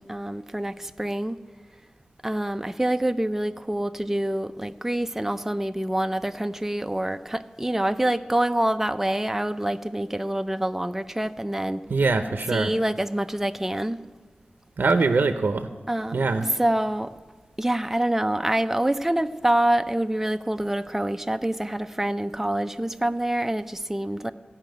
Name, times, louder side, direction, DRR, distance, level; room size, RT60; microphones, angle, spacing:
voice 1, 0.0-1.4 2.2-11.8 12.5-14.0 15.9-16.2 16.6-17.1 17.6-24.3, right 1 dB, 10° right, 9 dB, 0.5 m, -26 dB
voice 2, 11.9-12.7 14.8-15.7 16.1-16.5, right 3 dB, 75° right, 8 dB, 0.6 m, -22 dB
14.5 x 5.7 x 9.1 m, 1.4 s
wide cardioid pair, 55°, 3 cm